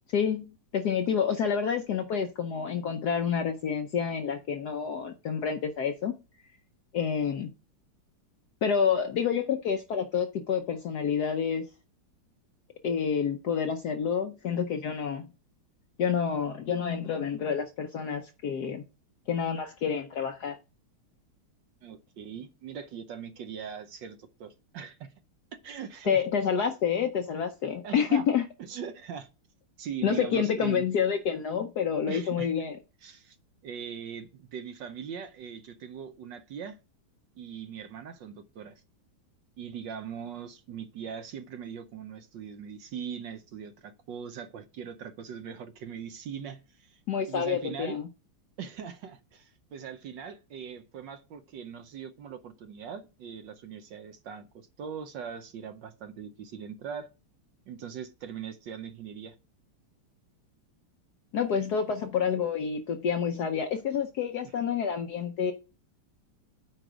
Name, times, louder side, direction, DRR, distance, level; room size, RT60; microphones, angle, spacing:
voice 1, 0.1-6.1 6.9-7.5 8.6-11.7 12.8-15.3 16.0-18.8 19.3-20.6 26.1-28.4 30.0-32.8 47.1-48.1 61.3-65.5, left 7 dB, 65° left, 1.0 m, -28 dB
voice 2, 21.8-25.1 25.6-26.2 27.8-28.3 28.6-29.3 29.8-30.9 32.1-32.5 33.0-33.4 33.6-36.8 37.4-38.7 39.6-47.0 47.3-48.0 48.6-57.1 57.7-59.3 64.4-64.5, right 7 dB, 65° right, 1.3 m, -40 dB
9.1 x 4.5 x 4.9 m
omnidirectional pair, 2.4 m